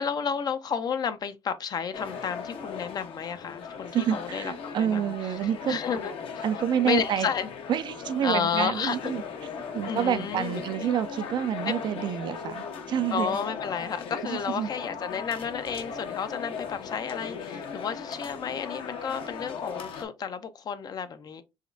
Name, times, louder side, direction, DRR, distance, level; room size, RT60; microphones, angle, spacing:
voice 1, 0.0-5.3 5.7-6.4 6.8-7.5 8.2-9.1 9.9-10.9 11.6-11.7 13.1-21.4, left 7 dB, 40° left, 0.6 m, -31 dB
sound 1, 1.9-20.0, left 6 dB, 65° left, 1.1 m, -38 dB
voice 2, 3.9-5.8 6.4-7.3 7.7-9.2 9.7-13.4 14.2-14.7, right 9 dB, 50° right, 0.4 m, -28 dB
5.0 x 3.0 x 2.6 m
cardioid pair, 120°, 10 cm